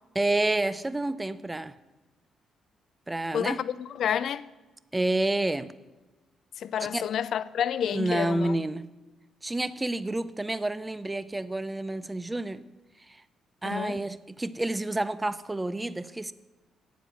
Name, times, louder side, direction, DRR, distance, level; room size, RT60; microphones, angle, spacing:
voice 1, 0.1-1.7 3.1-3.6 4.9-5.7 6.9-7.0 7.9-8.9 9.4-12.6 13.1-13.2 13.6-16.3, right 2 dB, 15° right, 0.5 m, -29 dB
voice 2, 3.3-4.5 6.6-8.5 13.6-14.0, left 9 dB, 65° left, 0.5 m, -29 dB
9.3 x 8.3 x 9.1 m
cardioid pair, 90°, 0 cm